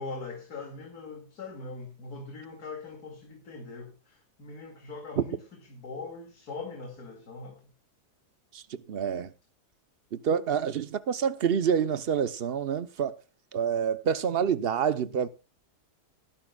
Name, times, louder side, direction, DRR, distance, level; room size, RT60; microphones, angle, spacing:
voice 1, 0.0-5.4 5.7-7.6, left 3 dB, 75° left, 2.8 m, -41 dB
voice 2, 8.5-9.3 10.1-13.2 13.5-15.3, right 7 dB, 45° right, 0.8 m, -27 dB
20.0 x 11.5 x 2.3 m
omnidirectional pair, 1.7 m